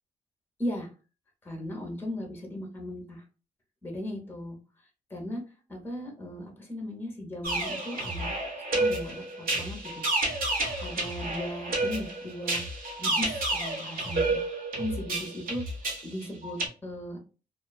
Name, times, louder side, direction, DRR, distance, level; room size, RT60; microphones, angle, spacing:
voice 1, 0.6-0.9 1.4-3.2 3.8-4.6 5.1-5.4 5.7-8.3 8.7-10.0 10.5-14.4 14.8-17.2, left 1 dB, 15° left, 1 dB, 0.7 m, -37 dB
sound 1, 7.4-16.7, right 2 dB, 70° right, 1.0 m, -30 dB
2.5 x 2.3 x 2.2 m, 0.35 s
cardioid pair, 95°, 15 cm